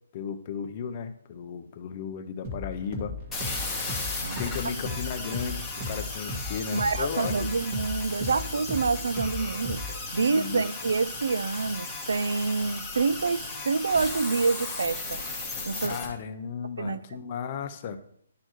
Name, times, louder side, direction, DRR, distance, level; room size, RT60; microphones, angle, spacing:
voice 1, 0.1-3.1 4.4-7.5 10.1-10.6 15.8-18.0, left 7 dB, 25° left, 0.5 m, -35 dB
sound 1, 2.4-10.1, left 2 dB, 25° right, 1.5 m, -37 dB
sound 2, 3.3-16.1, left 3 dB, 5° left, 1.0 m, -36 dB
voice 2, 6.7-9.8 10.1-15.2 15.7-16.0 16.8-17.0, right 4 dB, 80° right, 0.3 m, -27 dB
11.0 x 4.5 x 3.0 m
hypercardioid pair, 175°, 0 cm